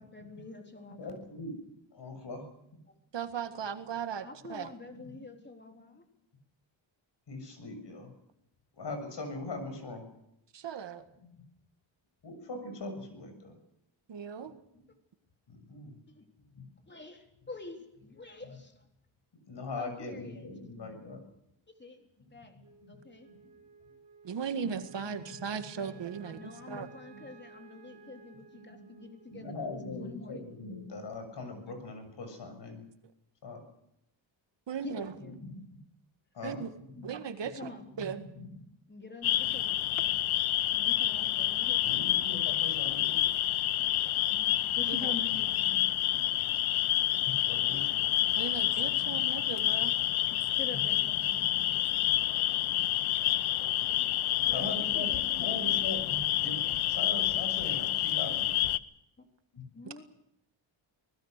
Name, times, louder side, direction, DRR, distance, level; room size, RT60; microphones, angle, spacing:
voice 1, 0.0-1.3 4.2-6.0 16.1-16.2 16.9-18.8 19.8-20.5 21.7-22.6 22.9-23.3 25.5-30.4 34.8-35.4 37.6-37.9 38.9-39.8 40.7-42.3 42.9-43.1 44.3-45.9 50.3-51.4 54.0-54.2 54.4-56.3 59.2-59.3 59.7-60.0, left 3 dB, 20° left, 4 dB, 3.6 m, -47 dB
voice 2, 0.8-1.6 1.9-2.4 5.0-5.2 5.6-5.8 7.3-8.1 8.7-10.0 11.2-11.4 12.2-13.6 14.7-14.8 15.5-16.0 16.5-16.6 19.5-21.2 22.4-23.0 23.3-23.5 24.6-25.6 25.9-27.3 27.9-28.0 28.5-32.9 33.4-33.6 35.3-35.8 36.3-36.6 36.9-37.1 37.4-37.7 38.0-38.6 39.8-40.2 41.2-41.3 41.7-43.2 44.7-44.8 45.3-45.4 47.4-48.1 48.7-49.3 50.1-50.3 50.7-50.8 51.1-52.2 54.3-58.5 59.5-59.7, left 2 dB, 55° left, 7 dB, 7.0 m, -42 dB
voice 3, 3.1-4.7 10.5-11.0 14.1-14.5 24.2-26.9 34.7-35.1 36.4-36.7 37.0-37.7 38.0-38.2 44.9-45.1 48.4-49.9, right 7 dB, 60° right, 9 dB, 1.9 m, -37 dB
Wind instrument woodwind instrument, 22.6-31.1, right 3 dB, 35° right, 6.6 m, -56 dB
sound 1, 39.2-58.8, left 13 dB, 80° left, 0.9 m, -28 dB
24.5 x 20.0 x 6.7 m, 0.80 s
cardioid pair, 95°, 48 cm